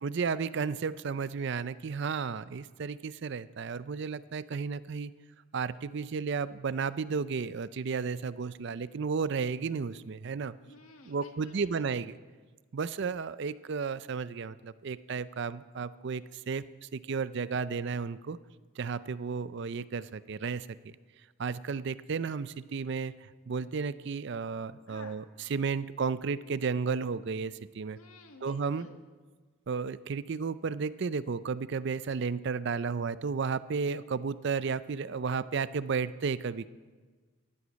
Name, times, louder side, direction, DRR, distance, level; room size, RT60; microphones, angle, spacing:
voice 1, 0.0-5.1 5.5-10.5 11.0-12.1 12.7-18.4 18.8-21.0 21.4-28.0 28.4-28.9 29.7-36.7, right 5 dB, 55° right, 16 dB, 0.4 m, -33 dB
voice 2, 10.6-11.9 24.9-25.2 27.9-29.0, left 3 dB, 85° left, 4 dB, 1.8 m, -52 dB
16.0 x 11.5 x 5.2 m, 1.4 s
head